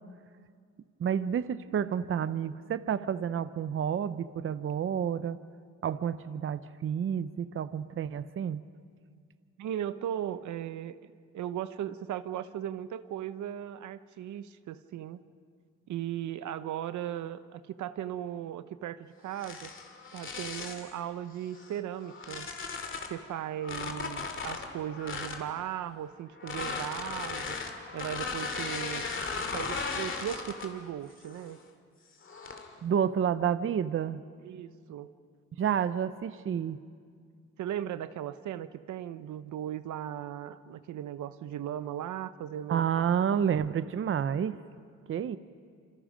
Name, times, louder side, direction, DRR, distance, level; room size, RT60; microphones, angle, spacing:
voice 1, 1.0-5.4 5.8-8.6 32.8-34.2 35.6-36.8 42.7-44.6 45.1-45.4, right 8 dB, 45° right, 13 dB, 0.7 m, -30 dB
voice 2, 9.6-15.2 15.9-19.7 20.1-22.5 23.0-27.6 27.9-29.0 29.5-31.6 34.4-35.1 37.6-43.1, right 11 dB, 75° right, 13 dB, 0.9 m, -37 dB
sound 1, 19.3-20.9 21.5-23.2 23.6-25.5 26.4-30.8 31.2-31.6 32.2-32.7, left 4 dB, 40° left, 2.6 m, -37 dB
27.0 x 25.5 x 5.1 m, 2.1 s
cardioid pair, 90°, 30 cm